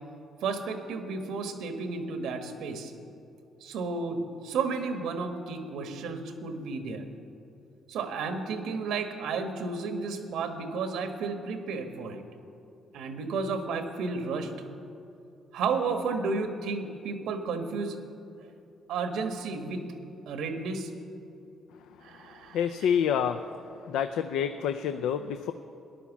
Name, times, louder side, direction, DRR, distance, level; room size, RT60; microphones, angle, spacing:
voice 1, 0.4-2.9 3.6-7.1 7.9-12.2 12.9-14.5 15.5-18.0 18.9-19.8 20.3-20.9 22.0-22.6, right 4 dB, 85° right, 6 dB, 1.4 m, -32 dB
voice 2, 22.5-23.4 23.9-25.5, left 8 dB, 90° left, 8 dB, 0.4 m, -27 dB
14.5 x 10.5 x 7.2 m, 2.6 s
cardioid pair, 90°, 0 cm